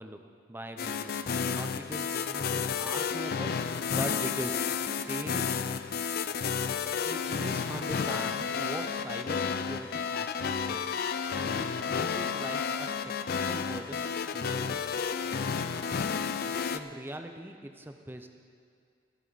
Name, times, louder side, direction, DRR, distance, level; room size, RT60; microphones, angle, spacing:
voice 1, 0.0-4.6 5.1-5.4 7.0-11.0 11.3-14.9 16.7-18.3, right 1 dB, 10° right, 6 dB, 0.6 m, -41 dB
sound 1, 0.8-16.8, left 6 dB, 50° left, 0.4 m, -31 dB
23.5 x 7.9 x 4.1 m, 2.2 s
head